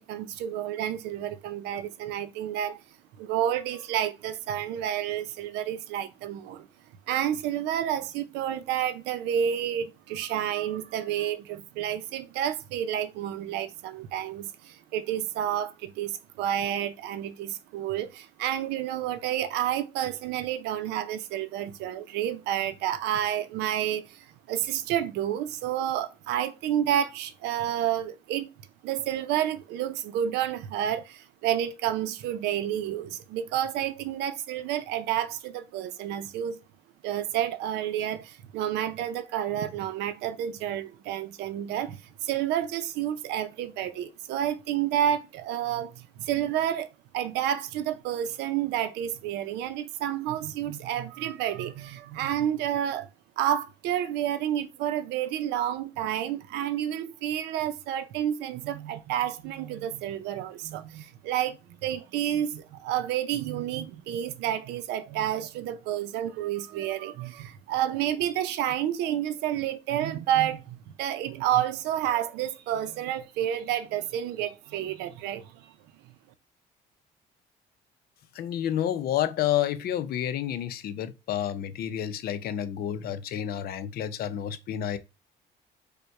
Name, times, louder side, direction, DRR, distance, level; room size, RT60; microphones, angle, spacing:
voice 1, 0.0-2.8 3.2-6.7 7.1-28.5 28.8-36.6 37.0-46.9 47.1-53.1 53.4-75.7, right 11 dB, 90° right, 0.6 m, -30 dB
voice 2, 78.3-85.0, left 10 dB, 65° left, 0.6 m, -30 dB
5.2 x 2.2 x 4.6 m
cardioid pair, 110°, 17 cm